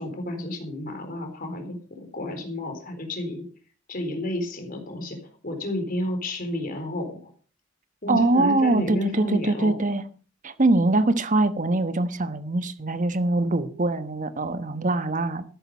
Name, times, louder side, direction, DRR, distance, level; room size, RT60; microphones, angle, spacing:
voice 1, 0.0-3.5 3.9-5.2 5.4-7.3 8.0-9.8, left 1 dB, 45° left, 4.0 m, -31 dB
voice 2, 8.1-10.0 10.4-15.4, right 2 dB, 40° right, 1.2 m, -23 dB
13.0 x 10.5 x 5.2 m
head